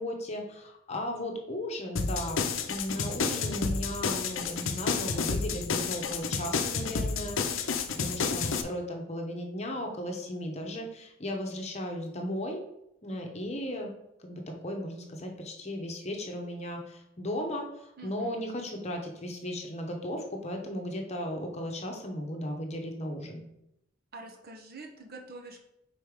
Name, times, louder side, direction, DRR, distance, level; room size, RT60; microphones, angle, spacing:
voice 1, 0.0-7.7 8.0-12.6 13.0-13.9 14.2-23.4, left 1 dB, 30° left, 2 dB, 0.9 m, -36 dB
sound 1, 2.0-8.6, left 5 dB, 70° left, 0.6 m, -30 dB
voice 2, 18.0-18.5 24.1-25.6, right 2 dB, 50° right, 3 dB, 0.9 m, -45 dB
5.4 x 4.4 x 4.8 m, 0.81 s
head